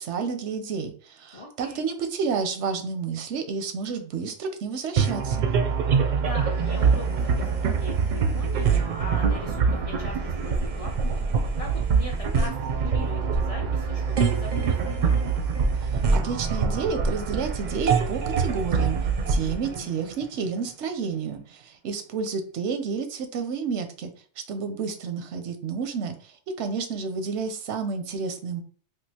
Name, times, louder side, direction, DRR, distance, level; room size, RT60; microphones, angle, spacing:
voice 1, 0.0-5.5 15.8-19.0 19.3-24.1 24.5-28.6, right 5 dB, 90° right, 8 dB, 0.9 m, -30 dB
voice 2, 1.3-1.8 6.2-11.2 11.6-15.1 19.4-19.9, left 2 dB, 50° left, 0 dB, 0.4 m, -40 dB
sound 1, 5.0-20.6, right 5 dB, 55° right, 0.5 m, -24 dB
3.6 x 2.5 x 2.8 m, 0.42 s
omnidirectional pair, 1.2 m